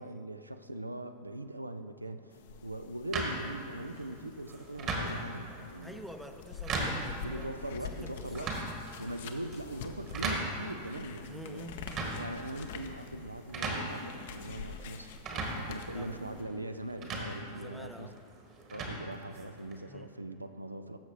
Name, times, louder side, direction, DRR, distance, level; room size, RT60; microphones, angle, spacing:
voice 1, 0.0-6.0 7.2-8.6 9.0-11.7 12.2-15.1 15.5-18.1 18.7-21.0, right 1 dB, 85° right, 9 dB, 0.3 m, -41 dB
sound 1, 2.3-16.4, left 5 dB, 55° left, 0.6 m, -47 dB
sound 2, 3.1-19.8, right 2 dB, 35° right, 1.4 m, -39 dB
voice 2, 5.8-7.5 7.9-8.6 11.3-12.0 15.9-16.1 17.5-18.2 19.9-20.1, equal, ahead, 6 dB, 0.5 m, -48 dB
14.0 x 6.6 x 2.9 m, 2.5 s
figure-of-eight pair, 90°, 0 cm